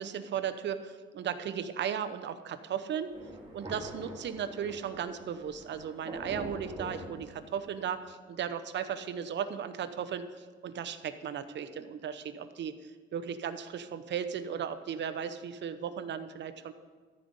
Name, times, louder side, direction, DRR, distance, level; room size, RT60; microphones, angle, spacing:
voice 1, 0.0-3.1 3.5-16.7, right 8 dB, 65° right, 11 dB, 0.9 m, -36 dB
Thunder, 3.1-7.9, right 1 dB, 25° right, 3.1 m, -44 dB
14.0 x 5.4 x 8.0 m, 1.5 s
cardioid pair, 90°, 20 cm